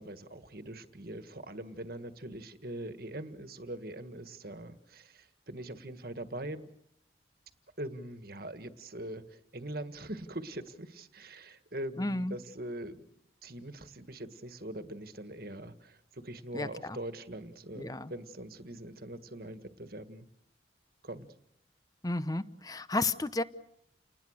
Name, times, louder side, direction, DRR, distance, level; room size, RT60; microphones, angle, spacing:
voice 1, 0.0-6.7 7.8-13.0 13.4-20.3 21.0-21.3, right 1 dB, 55° right, 10 dB, 1.8 m, -42 dB
voice 2, 12.0-12.3 16.5-17.0 17.8-18.1 22.0-23.4, left 2 dB, 20° left, 14 dB, 0.9 m, -32 dB
30.0 x 20.0 x 6.6 m, 0.76 s
head